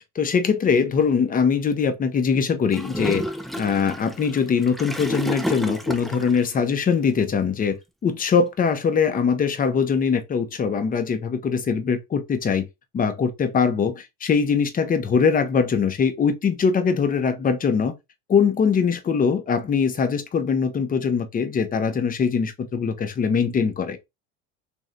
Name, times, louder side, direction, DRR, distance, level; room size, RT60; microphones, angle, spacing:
voice 1, 0.1-3.2 3.6-7.8 8.0-12.7 12.9-17.9 18.3-24.0, left 6 dB, 25° left, 0.8 m, -22 dB
Gurgling / Toilet flush, 2.7-6.4, equal, ahead, 0.4 m, -30 dB
3.1 x 2.6 x 3.8 m
supercardioid pair, 110°, 33 cm